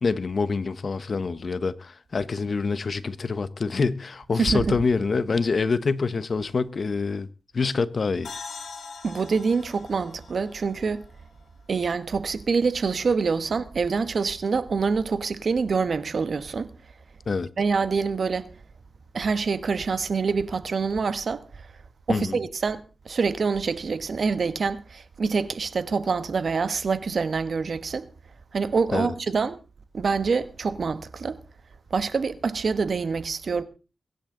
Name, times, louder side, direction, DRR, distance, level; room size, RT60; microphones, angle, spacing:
voice 1, 0.0-7.3 7.5-8.3 17.3-17.5 22.1-22.4 28.9-29.1, left 4 dB, 55° left, 1.0 m, -26 dB
voice 2, 4.4-4.7 9.0-11.0 11.7-16.7 17.6-18.5 19.1-21.4 22.1-28.0 28.5-29.6 29.9-31.4 31.9-33.6, right 5 dB, 65° right, 1.3 m, -26 dB
sound 1, 8.2-11.8, left 5 dB, 75° left, 3.5 m, -42 dB
22.5 x 11.0 x 3.8 m
cardioid pair, 60°, 0 cm